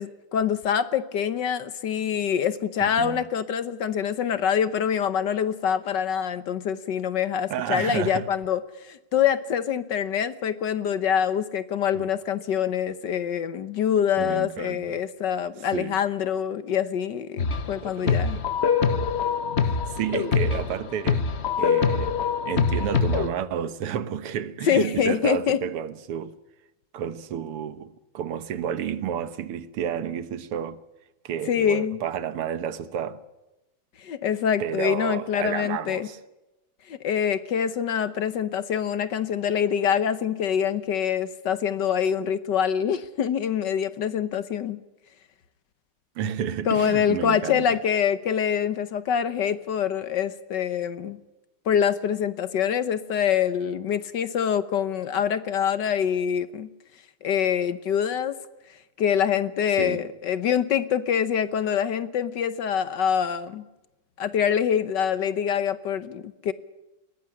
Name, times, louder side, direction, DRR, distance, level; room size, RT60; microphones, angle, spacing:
voice 1, 0.0-18.4 24.6-25.6 31.5-32.0 34.0-36.1 36.9-44.8 46.7-51.2 51.7-56.7 57.2-58.4 59.0-63.6 64.2-66.5, left 8 dB, 60° left, 1.4 m, -25 dB
voice 2, 2.8-3.2 7.5-8.3 14.2-15.0 15.7-16.0 17.8-18.4 19.6-21.3 21.6-22.2 22.5-26.3 26.9-30.8 31.2-33.2 34.6-36.2 46.2-47.8 59.8-60.0, right 9 dB, 85° right, 2.1 m, -31 dB
sound 1, 17.4-17.8 18.1-23.3, left 6 dB, 40° left, 1.0 m, -24 dB
21.0 x 18.0 x 9.9 m
omnidirectional pair, 2.4 m